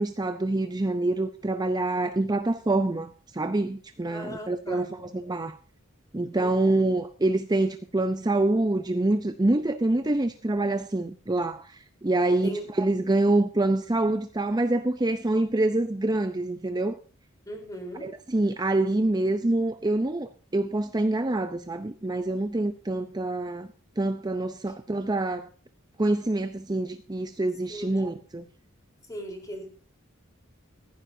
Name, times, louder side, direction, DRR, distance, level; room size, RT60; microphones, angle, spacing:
voice 1, 0.0-5.6 6.1-17.0 18.0-23.7 24.0-25.5 26.0-28.4, right 2 dB, 20° right, 0.6 m, -26 dB
voice 2, 4.1-4.9 6.4-6.9 12.3-12.7 17.5-18.1 27.7-28.1 29.1-29.7, equal, 15° left, 4.0 m, -38 dB
15.5 x 15.0 x 2.7 m
head